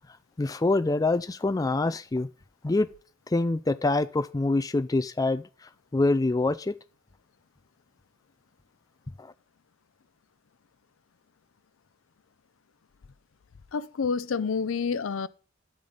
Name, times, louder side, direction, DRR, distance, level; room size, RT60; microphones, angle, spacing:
voice 1, 0.0-2.3 2.6-2.9 3.3-6.8 9.2-9.3, left 2 dB, 20° left, 0.4 m, -26 dB
voice 2, 13.7-15.3, left 5 dB, 80° left, 0.5 m, -28 dB
10.0 x 8.7 x 3.9 m
head